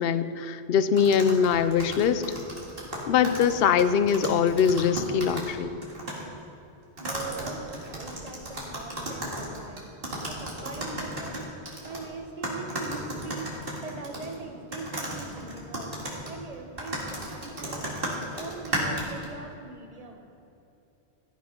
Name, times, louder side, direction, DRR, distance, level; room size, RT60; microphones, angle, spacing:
voice 1, 0.0-2.2 3.1-5.7, left 7 dB, 65° left, 12 dB, 0.8 m, -22 dB
sound 1, 1.0-5.5 5.8-6.2 7.0-12.0 12.4-14.4 14.7-19.3, right 1 dB, 55° right, 2.4 m, -34 dB
voice 2, 7.0-9.8 10.3-11.5 11.8-13.5 13.8-15.9 16.2-18.0 18.4-20.3, right 3 dB, 35° right, 3 dB, 1.3 m, -41 dB
14.5 x 8.3 x 5.3 m, 2.8 s
omnidirectional pair, 1.1 m